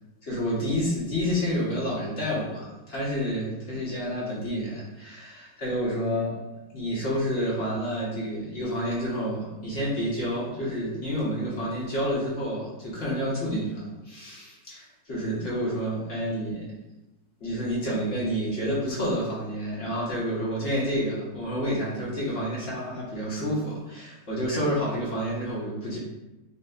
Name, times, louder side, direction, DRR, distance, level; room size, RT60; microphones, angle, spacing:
voice 1, 0.2-6.3 6.7-16.7 17.4-26.0, equal, 45° left, -7 dB, 1.0 m, -29 dB
5.4 x 2.4 x 2.4 m, 1.0 s
omnidirectional pair, 2.3 m